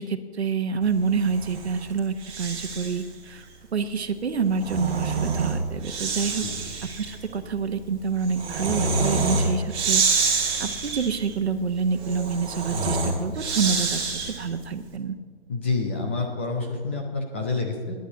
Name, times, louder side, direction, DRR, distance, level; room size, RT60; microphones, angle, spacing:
voice 1, 0.0-3.4 3.7-6.4 7.0-14.0 14.4-15.2, right 5 dB, 70° right, 10 dB, 1.1 m, -27 dB
Breathing, 1.1-3.1 4.3-14.6, right 4 dB, 15° right, 2.0 m, -27 dB
voice 2, 15.5-17.9, left 3 dB, 10° left, 1 dB, 0.5 m, -28 dB
10.0 x 8.2 x 8.6 m, 1.5 s
hypercardioid pair, 150°, 33 cm